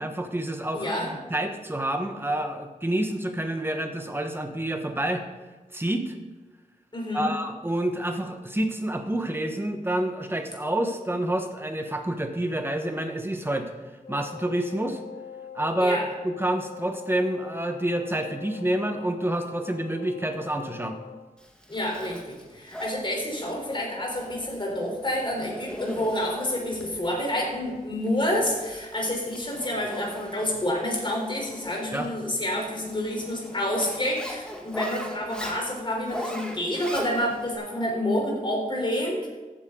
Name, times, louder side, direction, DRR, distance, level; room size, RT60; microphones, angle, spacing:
voice 1, 0.0-5.2 5.7-6.2 7.1-13.7 14.1-15.0 15.5-21.0 31.9-32.1, right 1 dB, 15° right, 5 dB, 1.3 m, -28 dB
voice 2, 0.7-1.1 6.9-7.3 15.8-16.1 21.7-39.3, left 1 dB, 35° left, -1 dB, 3.9 m, -28 dB
Wind instrument woodwind instrument, 14.0-21.3, left 8 dB, 85° left, 1.9 m, -43 dB
Zipper (clothing), 21.4-37.6, equal, 5° left, 1.9 m, -41 dB
14.5 x 9.0 x 3.9 m, 1.3 s
wide cardioid pair, 105°, 14 cm